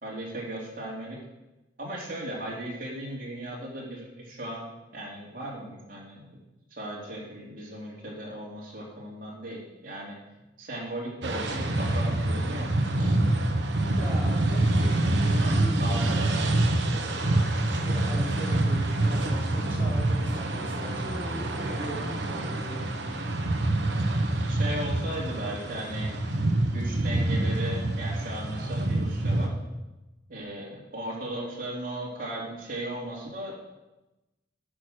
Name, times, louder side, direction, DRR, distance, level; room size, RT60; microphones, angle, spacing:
voice 1, 0.0-1.2 1.8-4.7 4.9-6.4 6.7-10.2 10.6-12.7 13.0-13.1 15.3-15.5 15.8-16.3 24.5-26.2 26.6-29.5 30.3-33.5, right 1 dB, 50° right, -4 dB, 3.1 m, -36 dB
sound 1, 11.2-29.5, right 2 dB, 75° right, 1.2 m, -26 dB
voice 2, 14.0-17.4 17.7-23.0, right 1 dB, 10° right, -8 dB, 4.0 m, -40 dB
9.6 x 6.2 x 6.6 m, 1.0 s
head